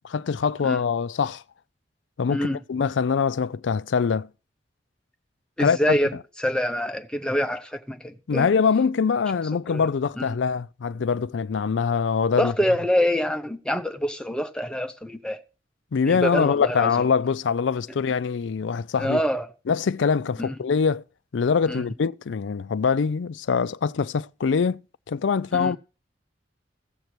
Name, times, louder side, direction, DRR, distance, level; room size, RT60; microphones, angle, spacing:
voice 1, 0.0-1.4 2.2-4.3 5.6-6.0 8.3-12.5 15.9-19.2 19.7-21.0 21.3-24.8 25.1-25.8, left 5 dB, 75° left, 0.4 m, -23 dB
voice 2, 2.3-2.6 5.6-6.1 6.4-8.5 9.7-9.9 10.2-10.3 12.4-15.4 16.1-16.9 19.0-19.5 20.4-20.6 21.7-21.8 25.5-25.8, equal, 5° left, 0.9 m, -26 dB
16.5 x 6.7 x 4.5 m
head